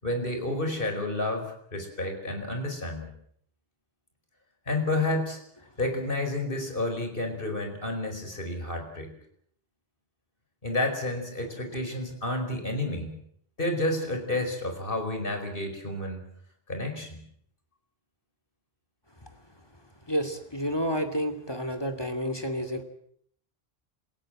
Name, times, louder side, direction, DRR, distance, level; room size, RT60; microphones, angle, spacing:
voice 1, 0.0-3.1 4.7-5.4 5.8-9.1 10.6-13.1 13.6-16.3 16.7-17.2, left 2 dB, 60° left, 5 dB, 5.2 m, -30 dB
voice 2, 20.1-22.8, equal, 25° left, 5 dB, 2.7 m, -30 dB
28.5 x 16.5 x 7.7 m, 0.65 s
omnidirectional pair, 1.1 m